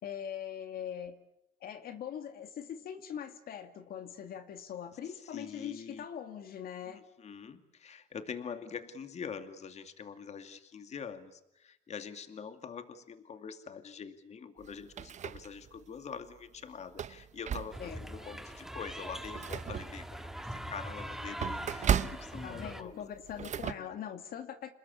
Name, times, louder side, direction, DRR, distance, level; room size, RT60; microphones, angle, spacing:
voice 1, 0.0-1.2 1.6-7.0 17.8-18.0 21.5-21.7 22.4-24.7, left 9 dB, 60° left, 8 dB, 2.4 m, -42 dB
voice 2, 5.0-6.0 6.9-23.0 23.3-23.5 23.8-24.0, left 6 dB, 40° left, 8 dB, 2.5 m, -45 dB
sound 1, 14.6-15.9 16.3-16.4 16.8-18.1 18.5-18.7 19.0-23.7, right 8 dB, 45° right, 1.1 m, -36 dB
sound 2, 17.7-22.8, right 1 dB, ahead, 1.9 m, -42 dB
28.0 x 21.0 x 8.4 m, 0.82 s
cardioid pair, 110°, 17 cm